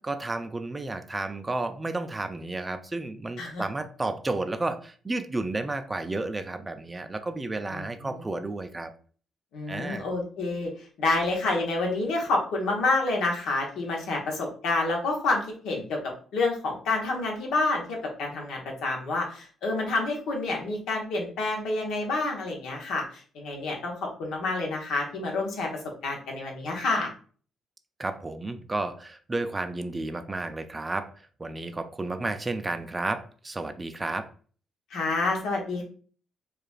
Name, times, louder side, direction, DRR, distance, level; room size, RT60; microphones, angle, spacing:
voice 1, 0.0-8.9 9.7-10.1 28.0-31.1 31.4-34.3, right 2 dB, 20° right, 9 dB, 0.4 m, -32 dB
voice 2, 9.5-10.7 11.0-16.0 16.3-23.0 23.3-23.9 24.2-25.7 26.0-27.1 34.9-35.8, left 3 dB, 85° left, 0 dB, 1.1 m, -28 dB
4.8 x 2.4 x 2.4 m, 0.42 s
cardioid pair, 90°, 0 cm